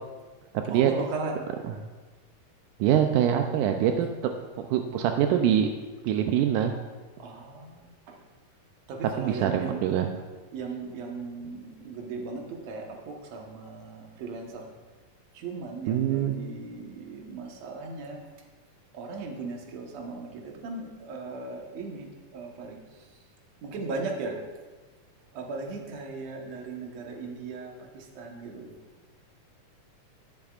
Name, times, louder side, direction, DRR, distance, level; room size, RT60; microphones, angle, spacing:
voice 1, 0.7-1.5 7.2-8.2 8.9-9.8 10.5-14.7 15.3-18.2 18.9-22.8 23.6-24.4 25.3-28.7, right 3 dB, 65° right, 1 dB, 2.3 m, -37 dB
voice 2, 2.8-4.1 4.7-5.7 6.0-6.7 9.2-10.1 15.9-16.4, right 10 dB, 85° right, 5 dB, 2.1 m, -24 dB
20.5 x 7.0 x 2.4 m, 1.3 s
omnidirectional pair, 3.5 m